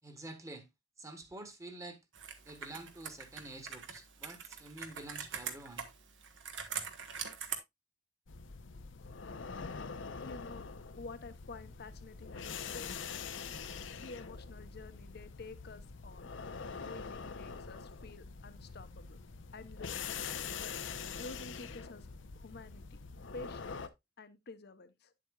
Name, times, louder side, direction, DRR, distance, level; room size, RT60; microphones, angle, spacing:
voice 1, 0.0-0.7 1.0-2.0 2.4-5.9, right 2 dB, 15° right, 1.3 m, -48 dB
Computer keyboard, 2.1-7.6, right 7 dB, 80° right, 1.4 m, -43 dB
sound 1, 8.3-23.9, left 5 dB, 90° left, 0.7 m, -44 dB
voice 2, 10.2-10.6 11.0-13.0 14.0-16.3 16.8-19.2 19.5-20.1 20.6-20.8 21.2-22.1 22.3-23.0 23.3-23.8 24.2-25.1, left 3 dB, 60° left, 0.9 m, -49 dB
9.4 x 7.6 x 2.3 m
head